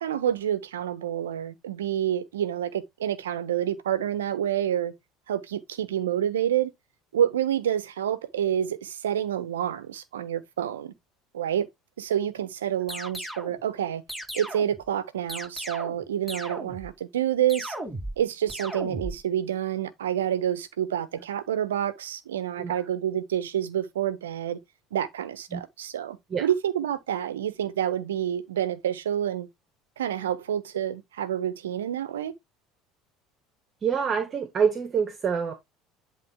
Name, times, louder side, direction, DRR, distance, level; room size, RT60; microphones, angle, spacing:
voice 1, 0.0-4.9 5.3-6.7 7.1-10.9 11.3-11.7 12.0-14.0 14.3-17.7 18.2-24.6 24.9-29.5 30.0-32.3, right 10 dB, 85° right, 1.1 m, -28 dB
sound 1, 12.9-13.6 14.1-14.8 15.3-16.0 16.3-16.9 17.5-18.2 18.5-19.2, right 1 dB, ahead, 4.6 m, -36 dB
voice 2, 33.8-35.5, right 6 dB, 40° right, 1.8 m, -26 dB
11.0 x 3.8 x 3.7 m
hypercardioid pair, 70°, 0 cm